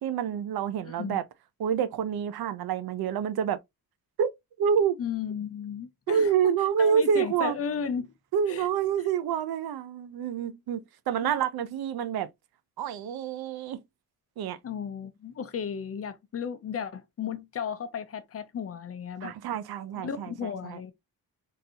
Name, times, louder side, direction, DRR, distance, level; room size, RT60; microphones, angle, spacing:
voice 1, 0.0-1.2 1.6-3.6 4.2-4.3 4.6-5.0 6.1-7.6 8.3-10.8 11.1-12.3 12.8-13.8 14.4-14.6 19.2-20.3 20.6-20.8, right 7 dB, 80° right, 0.6 m, -27 dB
voice 2, 0.8-1.2 5.0-6.3 6.8-8.1 8.5-8.7 11.2-11.3 14.6-19.3 20.0-20.9, left 7 dB, 40° left, 0.5 m, -34 dB
3.8 x 2.6 x 2.7 m
wide cardioid pair, 135°, 37 cm